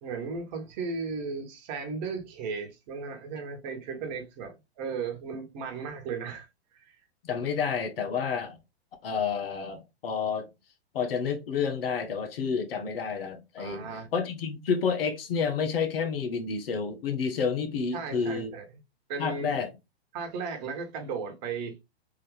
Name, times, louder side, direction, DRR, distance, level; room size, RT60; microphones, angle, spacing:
voice 1, 0.0-6.5 6.7-7.0 13.6-14.1 17.9-18.6 19.1-19.5 20.1-21.7, right 5 dB, 45° right, 1.3 m, -35 dB
voice 2, 7.2-8.6 9.0-10.5 10.9-18.5 19.2-19.7, left 6 dB, 65° left, 1.2 m, -30 dB
3.7 x 2.9 x 3.3 m
hypercardioid pair, 115°, 32 cm